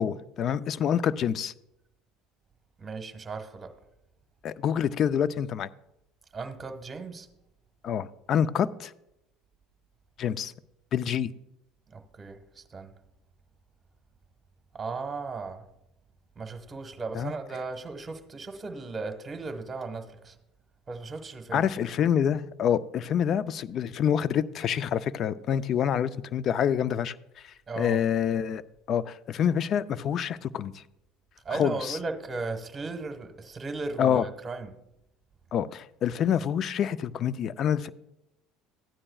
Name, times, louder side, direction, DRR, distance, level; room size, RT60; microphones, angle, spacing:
voice 1, 0.0-1.5 4.4-5.7 7.8-8.9 10.2-10.5 10.9-11.3 17.1-17.3 21.5-27.2 27.8-28.6 28.9-30.8 31.5-32.0 34.0-34.2 35.5-37.9, left 8 dB, 50° left, 0.4 m, -27 dB
voice 2, 2.8-3.7 6.3-7.3 11.9-12.9 14.7-15.6 16.4-20.3 20.9-21.6 27.7-28.0 31.4-34.7, right 3 dB, 25° right, 1.4 m, -36 dB
14.5 x 9.8 x 2.3 m
supercardioid pair, 95°, 0 cm